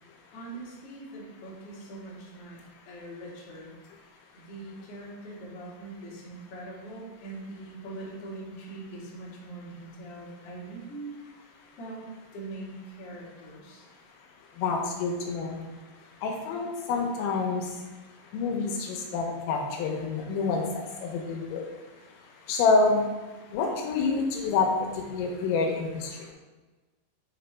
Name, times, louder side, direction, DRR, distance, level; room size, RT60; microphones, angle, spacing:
voice 1, 0.3-2.6 2.8-3.7 4.3-11.1 11.8-12.0 12.3-13.9, right 2 dB, 65° left, -6 dB, 1.4 m, -42 dB
voice 2, 14.6-15.7 16.2-17.8 18.3-21.7 22.5-23.1 23.5-26.3, left 4 dB, 85° left, 1 dB, 3.5 m, -27 dB
8.3 x 4.0 x 3.4 m, 1.3 s
omnidirectional pair, 5.8 m